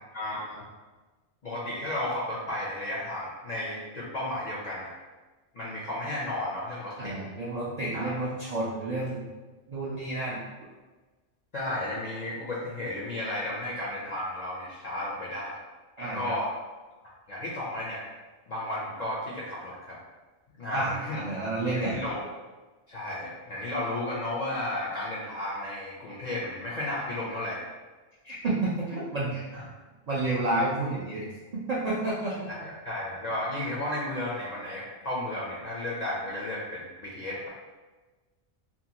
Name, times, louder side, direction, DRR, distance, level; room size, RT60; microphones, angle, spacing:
voice 1, 0.1-0.7 1.4-4.9 5.5-7.2 7.9-8.1 11.5-15.6 16.0-16.5 17.3-18.0 18.5-20.0 20.6-21.2 21.7-22.2 22.9-27.6 29.5-29.6 32.6-37.5, left 1 dB, 60° left, -6 dB, 0.4 m, -33 dB
voice 2, 7.0-9.3 9.7-10.4 16.0-16.3 20.7-22.0 28.2-29.4 30.1-32.5, right 2 dB, 60° right, -7 dB, 0.4 m, -30 dB
2.7 x 2.2 x 2.8 m, 1.3 s
omnidirectional pair, 1.2 m